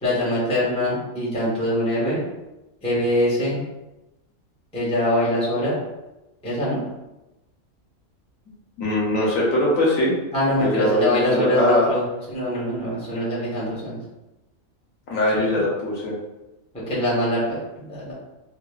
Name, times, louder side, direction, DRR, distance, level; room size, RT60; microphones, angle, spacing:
voice 1, 0.0-2.2 2.8-3.6 4.7-5.8 6.4-6.8 10.3-14.0 15.4-15.5 16.9-17.6 17.9-18.1, left 1 dB, 5° left, -8 dB, 0.8 m, -23 dB
voice 2, 8.8-10.1 10.6-11.9 15.1-16.1, left 1 dB, 70° left, -4 dB, 1.2 m, -21 dB
3.7 x 2.0 x 2.3 m, 1.0 s
omnidirectional pair, 1.5 m